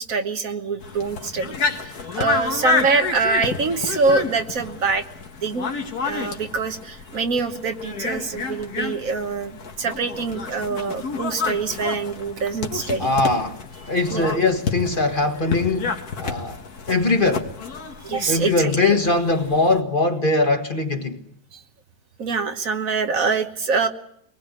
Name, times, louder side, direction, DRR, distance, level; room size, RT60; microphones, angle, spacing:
voice 1, 0.0-5.0 5.4-5.7 6.0-13.1 14.1-14.3 18.0-18.9 21.5-21.6 22.2-23.9, right 4 dB, 60° right, 1.7 m, -25 dB
sound 1, 0.8-19.8, left 4 dB, 75° left, 2.1 m, -30 dB
voice 2, 13.0-16.6 16.9-17.5 18.3-21.2, left 2 dB, 35° left, 1.7 m, -21 dB
24.0 x 19.5 x 8.3 m
omnidirectional pair, 1.6 m